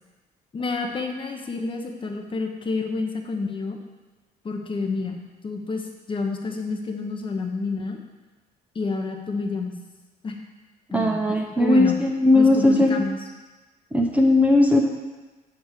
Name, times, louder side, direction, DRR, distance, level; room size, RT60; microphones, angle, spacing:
voice 1, 0.5-3.8 4.4-5.2 5.4-8.0 8.7-9.8 10.2-10.4 10.9-12.0 12.3-13.2, left 4 dB, 30° left, 3 dB, 1.1 m, -29 dB
voice 2, 10.9-13.0 13.9-14.8, left 2 dB, 10° right, 1 dB, 0.9 m, -18 dB
8.0 x 4.4 x 6.7 m, 1.2 s
cardioid pair, 110°, 17 cm